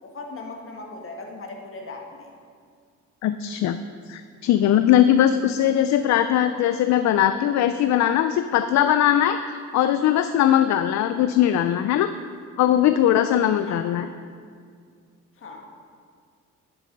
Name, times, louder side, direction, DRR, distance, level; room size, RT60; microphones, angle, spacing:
voice 1, 0.0-2.3 13.6-13.8 15.4-15.6, left 3 dB, 45° left, 2 dB, 1.6 m, -38 dB
voice 2, 3.2-3.8 4.1-12.1 12.6-14.1, left 11 dB, 65° left, 10 dB, 0.4 m, -20 dB
9.9 x 7.1 x 5.3 m, 2.1 s
cardioid pair, 90°, 30 cm